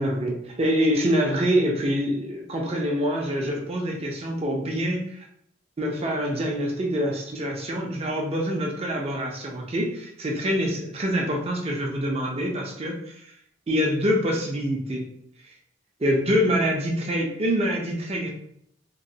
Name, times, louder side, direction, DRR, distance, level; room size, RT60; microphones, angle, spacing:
voice 1, 0.0-5.0 5.8-13.0 13.7-15.1 16.0-18.3, equal, 30° right, 0 dB, 0.5 m, -25 dB
3.0 x 2.2 x 2.7 m, 0.71 s
head